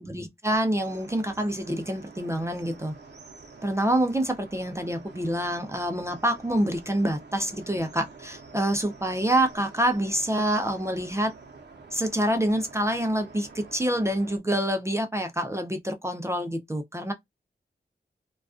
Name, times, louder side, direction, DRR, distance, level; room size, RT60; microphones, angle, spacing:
voice 1, 0.0-2.9 3.6-11.3 11.9-17.1, right 1 dB, 15° right, 0.4 m, -27 dB
sound 1, 0.8-14.4, right 4 dB, 65° right, 0.7 m, -48 dB
2.3 x 2.2 x 2.3 m
wide cardioid pair, 70°, 19 cm